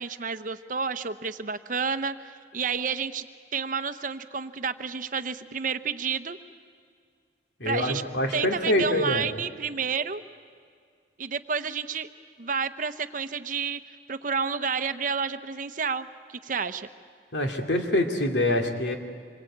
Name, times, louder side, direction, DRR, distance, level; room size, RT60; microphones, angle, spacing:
voice 1, 0.0-3.3 3.5-6.4 7.6-8.0 8.3-10.2 11.2-12.1 12.4-13.8 14.1-16.9, right 5 dB, 50° right, 11 dB, 0.8 m, -30 dB
voice 2, 7.6-9.3 17.3-19.0, left 1 dB, 75° left, 4 dB, 2.5 m, -25 dB
26.5 x 22.5 x 8.7 m, 2.2 s
head